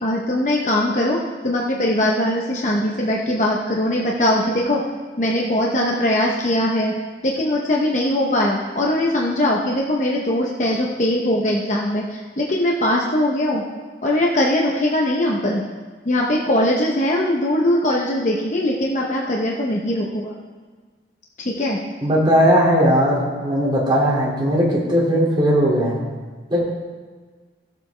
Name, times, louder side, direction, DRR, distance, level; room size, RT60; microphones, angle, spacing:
voice 1, 0.0-4.8 5.2-6.9 7.2-13.6 14.0-15.6 16.1-20.3 21.4-21.8, left 1 dB, 40° left, -2 dB, 0.9 m, -21 dB
voice 2, 22.0-26.1 26.5-26.7, equal, 25° right, -5 dB, 2.4 m, -18 dB
14.5 x 7.4 x 3.3 m, 1.4 s
head